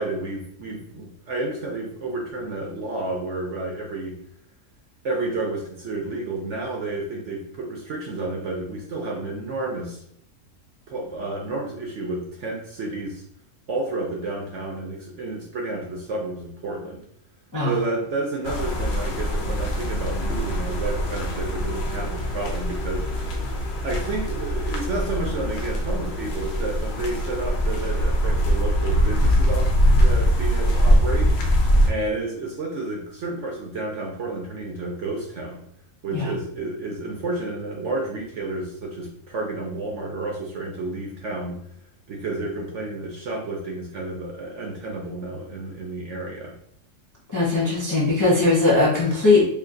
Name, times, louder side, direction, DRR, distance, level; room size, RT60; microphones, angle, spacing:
voice 1, 0.0-4.2 5.0-10.0 10.9-13.2 13.7-17.0 17.6-23.6 23.8-31.3 31.9-35.7 36.0-41.6 42.1-46.5, right 2 dB, 60° right, -1 dB, 0.9 m, -31 dB
sound 1, 18.4-31.9, equal, 60° left, 0.7 m, -22 dB
voice 2, 47.3-49.4, left 3 dB, 15° left, -6 dB, 0.6 m, -19 dB
3.1 x 2.4 x 3.7 m, 0.68 s
omnidirectional pair, 1.6 m